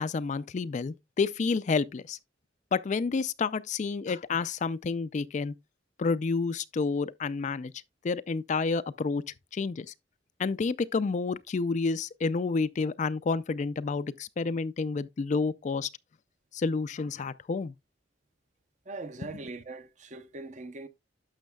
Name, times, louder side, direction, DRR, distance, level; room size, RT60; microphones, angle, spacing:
voice 1, 0.0-2.2 2.7-5.5 6.0-7.7 8.0-9.2 9.5-9.9 10.4-15.9 16.5-17.7, left 4 dB, 40° left, 0.4 m, -29 dB
voice 2, 18.9-20.9, right 3 dB, 40° right, 0.7 m, -41 dB
11.5 x 6.5 x 2.3 m
head